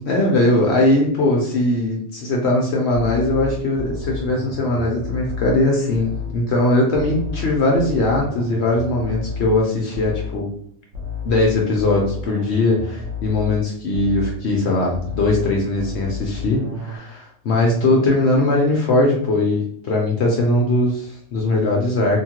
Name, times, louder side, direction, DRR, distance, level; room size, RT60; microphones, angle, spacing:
voice 1, 0.0-10.5 11.2-22.2, left 2 dB, 60° left, -1 dB, 0.7 m, -20 dB
sound 1, 2.9-6.4 6.9-10.5 10.9-14.4 14.9-17.0, left 5 dB, 60° right, 0.9 m, -31 dB
2.9 x 2.3 x 2.8 m, 0.62 s
omnidirectional pair, 1.5 m